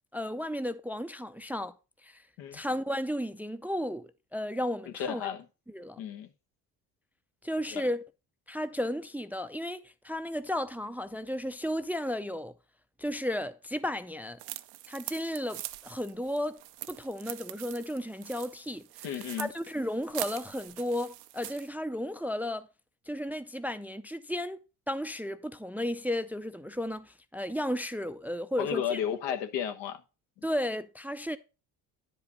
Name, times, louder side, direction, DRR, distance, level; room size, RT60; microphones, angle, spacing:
voice 1, 0.1-1.7 2.0-2.2 2.5-5.3 5.7-6.0 7.4-8.0 8.5-12.5 13.0-14.4 14.9-16.6 16.9-22.7 23.1-24.6 24.9-29.0 30.4-31.4, equal, 5° right, 0.4 m, -34 dB
voice 2, 4.9-5.5 6.0-6.3 7.7-7.9 19.0-19.5 28.6-30.0, left 9 dB, 85° left, 1.2 m, -33 dB
sound 1, 14.4-21.7, right 16 dB, 80° right, 0.6 m, -43 dB
9.8 x 5.2 x 4.1 m
supercardioid pair, 70°, 42 cm